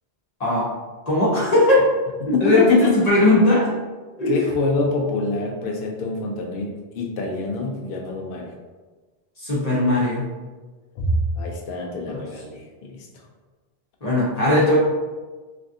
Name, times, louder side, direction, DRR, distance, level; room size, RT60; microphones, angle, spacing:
voice 1, 1.1-1.8 2.3-3.7 4.2-4.4 9.4-10.3 12.1-12.2 14.0-14.8, left 2 dB, 40° left, -7 dB, 1.0 m, -18 dB
voice 2, 2.3-2.9 4.3-8.5 11.0-13.1, left 3 dB, 65° left, 0 dB, 0.7 m, -25 dB
3.3 x 2.4 x 2.6 m, 1.3 s
omnidirectional pair, 1.1 m